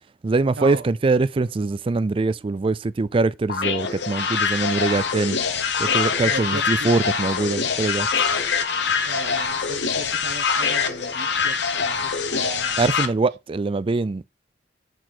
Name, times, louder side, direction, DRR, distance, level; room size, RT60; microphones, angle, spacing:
voice 1, 0.2-5.4 5.8-8.1 12.8-14.3, right 3 dB, 30° right, 0.3 m, -23 dB
sound 1, 3.5-13.1, left 5 dB, 65° left, 0.9 m, -24 dB
voice 2, 6.2-6.9 9.0-11.5 11.8-12.8, right 2 dB, 65° right, 0.9 m, -35 dB
8.0 x 4.2 x 4.5 m
head